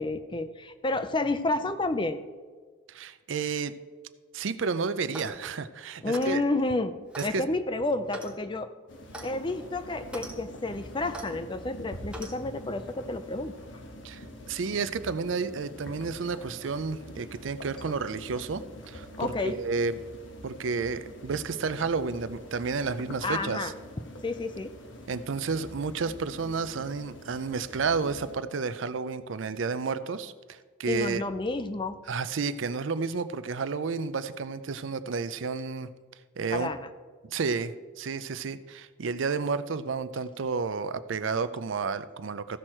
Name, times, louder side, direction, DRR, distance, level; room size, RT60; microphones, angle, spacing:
voice 1, 0.0-2.2 6.0-6.9 7.2-8.7 9.2-13.5 19.2-19.6 23.2-23.7 24.2-24.7 30.9-32.0 36.5-36.8, left 2 dB, 25° left, 11 dB, 0.5 m, -30 dB
voice 2, 2.9-3.7 4.3-6.4 7.2-7.4 14.0-20.0 20.4-23.7 25.1-31.2 32.1-35.9 36.4-36.7 37.2-42.6, right 4 dB, 75° right, 13 dB, 0.5 m, -31 dB
Clock, 5.0-5.4 6.1-6.4 7.1-7.3 8.1-8.4 9.1-9.3 10.0-10.3 11.1-11.3 12.1-12.3, equal, 5° right, 0.9 m, -40 dB
sound 1, 8.9-28.3, left 1 dB, 70° left, 1.2 m, -45 dB
15.0 x 6.3 x 4.4 m, 1.5 s
head